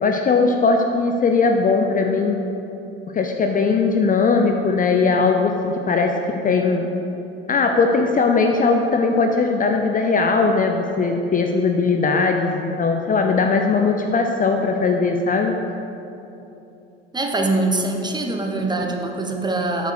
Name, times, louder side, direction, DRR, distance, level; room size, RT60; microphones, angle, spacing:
voice 1, 0.0-2.4 3.1-6.1 6.4-6.9 7.5-15.5, left 4 dB, 25° left, 3 dB, 0.6 m, -19 dB
voice 2, 17.1-19.9, right 2 dB, 15° right, 2 dB, 1.0 m, -23 dB
8.0 x 5.3 x 4.8 m, 2.9 s
hypercardioid pair, 70°, 32 cm